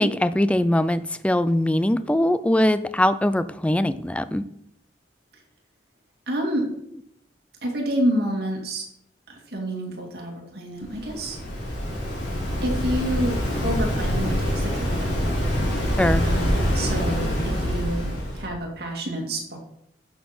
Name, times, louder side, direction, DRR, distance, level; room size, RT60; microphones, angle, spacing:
voice 1, 0.0-4.5 16.0-16.3, left 1 dB, 5° left, 14 dB, 0.3 m, -21 dB
voice 2, 6.3-6.7 7.6-8.8 9.3-11.4 12.6-13.4 13.6-15.2 16.2-19.6, right 1 dB, 60° right, 1 dB, 2.4 m, -28 dB
Waves surf, 10.8-18.5, equal, 80° left, 3.9 m, -25 dB
11.0 x 6.6 x 4.4 m, 0.76 s
head